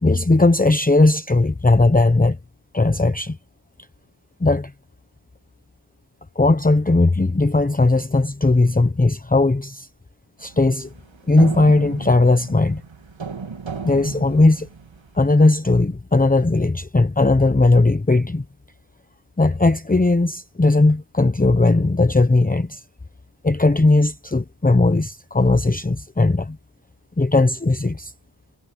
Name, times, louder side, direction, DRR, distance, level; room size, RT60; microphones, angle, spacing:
voice 1, 0.0-2.4 2.7-3.4 4.4-4.7 6.4-9.9 10.4-10.9 11.3-12.8 13.8-14.7 15.1-18.4 19.4-22.8 23.4-26.6 27.2-28.1, left 2 dB, 15° left, 1.0 m, -17 dB
sound 1, 10.4-15.2, right 5 dB, 65° right, 2.9 m, -35 dB
cardioid pair, 50°, 50 cm